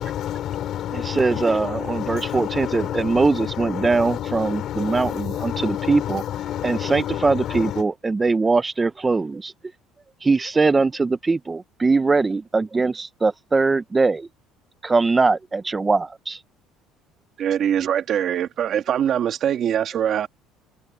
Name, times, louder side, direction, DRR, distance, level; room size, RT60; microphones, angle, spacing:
voice 1, 0.0-7.8, left 11 dB, 45° left, 3.4 m, -29 dB
voice 2, 0.9-6.2 6.6-9.5 10.2-14.3 14.8-16.4, right 3 dB, 15° right, 0.3 m, -21 dB
voice 3, 17.4-20.3, right 9 dB, 40° right, 1.9 m, -22 dB
cardioid pair, 160°, 0 cm